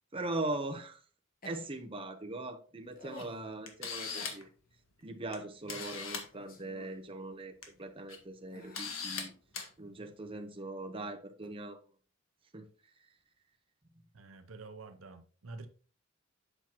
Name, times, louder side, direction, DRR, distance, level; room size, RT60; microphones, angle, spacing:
voice 1, 0.1-1.0 1.4-4.5 5.0-7.5 7.8-9.3 9.8-11.8 12.5-12.6, right 2 dB, 25° right, 0.9 m, -40 dB
sound 1, 1.4-1.8 2.9-3.5 4.1-4.4 5.6-5.9 6.2-7.0 7.8-7.9 8.5-9.0 9.6-9.7 11.4-11.5, left 1 dB, 45° left, 1.2 m, -52 dB
Camera, 3.2-3.3 3.7-4.5 5.3-5.4 5.7-6.3 7.4-7.6 8.1-8.2 8.7-9.2 9.5-9.7, left 5 dB, 75° left, 1.5 m, -39 dB
voice 2, 14.1-15.7, right 3 dB, 75° right, 0.7 m, -48 dB
8.0 x 5.9 x 3.0 m
head